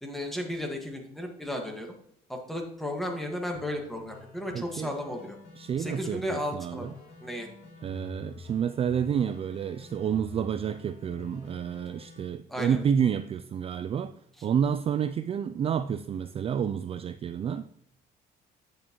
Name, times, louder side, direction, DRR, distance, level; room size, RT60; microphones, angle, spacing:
voice 1, 0.0-1.9 2.3-5.4 5.8-6.9 7.2-7.5 12.5-12.8, left 1 dB, ahead, 1.7 m, -34 dB
sound 1, 3.5-12.3, left 4 dB, 85° left, 2.9 m, -48 dB
voice 2, 4.5-4.9 5.6-6.9 7.8-14.1 14.4-17.7, right 8 dB, 35° right, 0.3 m, -29 dB
8.7 x 6.5 x 3.0 m
cardioid pair, 110°, 17 cm